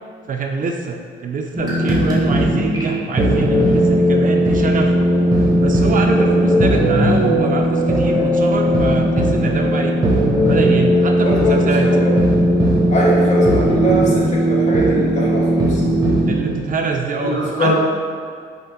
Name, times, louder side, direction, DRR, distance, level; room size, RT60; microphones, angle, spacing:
voice 1, 0.3-4.9 5.6-10.0 10.5-11.9 16.3-17.7, right 4 dB, 45° right, 2 dB, 0.4 m, -24 dB
sound 1, 1.6-16.7, equal, 20° right, 1.2 m, -17 dB
voice 2, 11.2-12.2 12.9-15.8 17.2-17.7, equal, 35° left, -5 dB, 1.4 m, -21 dB
5.5 x 3.9 x 2.3 m, 2.2 s
cardioid pair, 90°, 20 cm